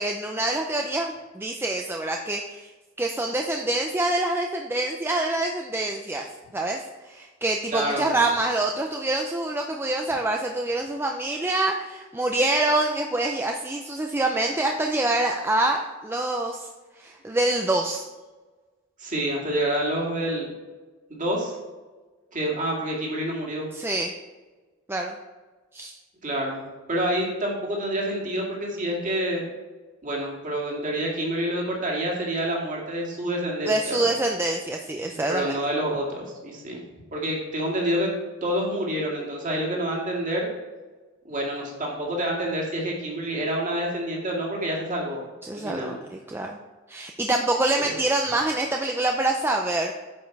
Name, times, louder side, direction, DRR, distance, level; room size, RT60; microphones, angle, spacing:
voice 1, 0.0-2.7 3.0-6.3 6.5-16.7 17.0-18.0 23.7-24.1 24.9-25.1 25.7-26.0 33.7-35.5 45.4-46.6 46.9-49.9, right 2 dB, 10° right, 2 dB, 0.4 m, -26 dB
voice 2, 7.7-8.1 19.0-20.5 21.1-21.5 22.3-23.7 26.2-29.4 30.0-34.1 35.1-36.9 37.1-38.1 38.4-40.5 41.2-45.3 45.5-46.0 47.8-48.0, right 1 dB, 40° right, -2 dB, 2.1 m, -28 dB
8.8 x 5.2 x 4.6 m, 1.3 s
head